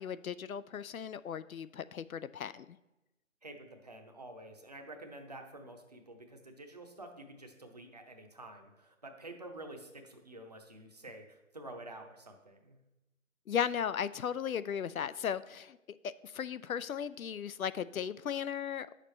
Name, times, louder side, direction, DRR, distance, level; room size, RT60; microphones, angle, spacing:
voice 1, 0.0-2.8 13.5-15.8 16.0-18.9, left 8 dB, 90° left, 16 dB, 0.5 m, -36 dB
voice 2, 3.4-12.8, right 1 dB, 30° right, 4 dB, 0.7 m, -49 dB
9.1 x 6.5 x 3.2 m, 0.99 s
figure-of-eight pair, 160°, 41 cm